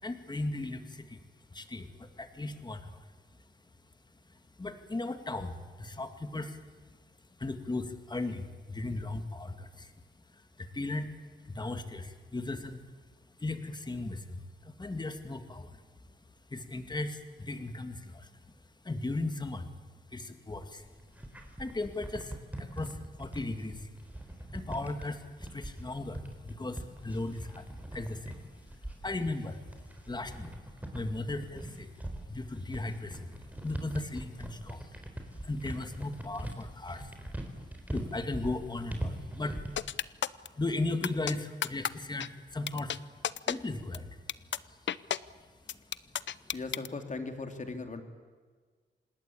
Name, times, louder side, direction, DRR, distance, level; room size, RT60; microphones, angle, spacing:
voice 1, 0.0-3.1 4.3-9.9 10.3-11.1 11.4-12.9 13.4-15.9 16.5-18.4 18.8-19.7 20.1-20.9 21.3-30.6 30.9-31.9 32.3-35.1 35.3-43.0 43.5-45.0 45.4-46.6, left 2 dB, 20° left, 8 dB, 2.2 m, -38 dB
sound 1, 20.8-39.9, right 1 dB, 10° right, 4.1 m, -42 dB
sound 2, 39.8-40.5 41.0-41.3 41.6-41.9 42.2-42.3 42.7-43.0 43.2-43.5 43.9-44.0 44.3-44.6 44.9-45.2 45.7-46.9, left 9 dB, 70° left, 0.7 m, -31 dB
voice 2, 46.5-48.0, left 3 dB, 40° left, 6 dB, 3.0 m, -38 dB
27.0 x 20.0 x 8.6 m, 1.5 s
wide cardioid pair, 105°, 19 cm